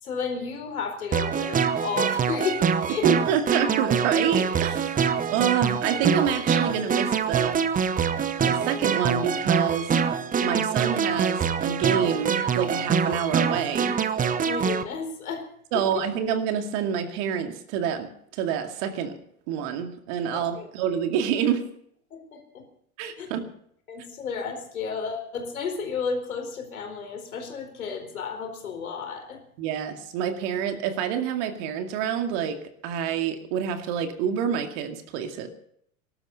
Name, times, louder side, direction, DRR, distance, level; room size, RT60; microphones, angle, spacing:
voice 1, 0.0-2.6 2.9-3.1 14.4-15.4 15.7-15.8 20.3-20.7 22.1-22.6 23.2-23.3 23.9-29.4, left 5 dB, 70° left, 4 dB, 4.3 m, -32 dB
sound 1, 1.1-14.8, right 6 dB, 20° right, 1.0 m, -25 dB
voice 2, 3.0-7.6 8.4-9.9 10.4-14.0 15.7-18.1 18.4-19.2 19.5-21.6 23.0-23.5 29.6-32.6 32.8-35.5, right 8 dB, 50° right, 6 dB, 2.3 m, -27 dB
20.0 x 12.0 x 5.6 m, 0.67 s
figure-of-eight pair, 80°, 44 cm